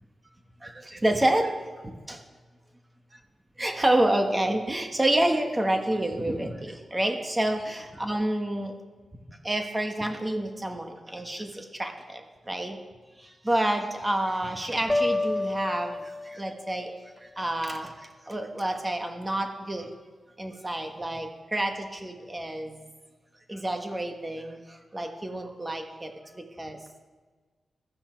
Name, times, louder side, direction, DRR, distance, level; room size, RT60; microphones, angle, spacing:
voice 1, 0.6-1.5 1.8-2.2 3.6-8.7 9.3-12.8 13.2-19.9 20.4-22.9 23.5-26.8, right 1 dB, 15° right, 4 dB, 1.3 m, -29 dB
sound 1, 14.9-16.8, left 2 dB, 10° left, 1.0 m, -29 dB
15.5 x 12.5 x 4.5 m, 1.4 s
wide cardioid pair, 130°, 0 cm